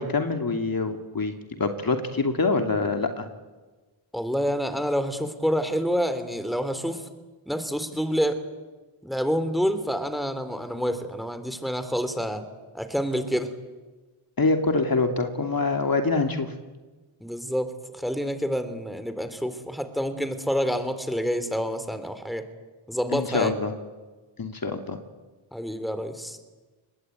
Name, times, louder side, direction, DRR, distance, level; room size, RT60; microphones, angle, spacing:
voice 1, 0.0-1.3 1.6-3.3 14.4-16.5 23.1-23.7 24.4-25.0, left 3 dB, 45° left, 5 dB, 2.8 m, -25 dB
voice 2, 4.1-7.0 7.5-8.4 9.0-12.4 12.7-13.5 17.2-22.5 22.9-23.5 25.5-26.4, equal, ahead, 10 dB, 3.6 m, -28 dB
24.5 x 21.0 x 9.2 m, 1.3 s
cardioid pair, 60°, 48 cm